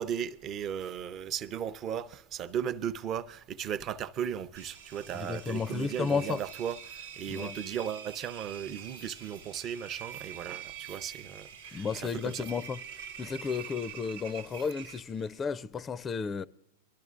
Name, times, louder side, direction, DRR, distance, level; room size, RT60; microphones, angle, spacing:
voice 1, 0.0-12.5, right 9 dB, 35° right, 0.6 m, -36 dB
Engine, 4.6-15.4, right 8 dB, 75° right, 0.8 m, -46 dB
voice 2, 5.1-6.4 7.3-7.6 11.7-12.8 13.2-16.4, left 5 dB, 20° left, 0.4 m, -33 dB
24.0 x 12.0 x 2.5 m
hypercardioid pair, 100°, 0 cm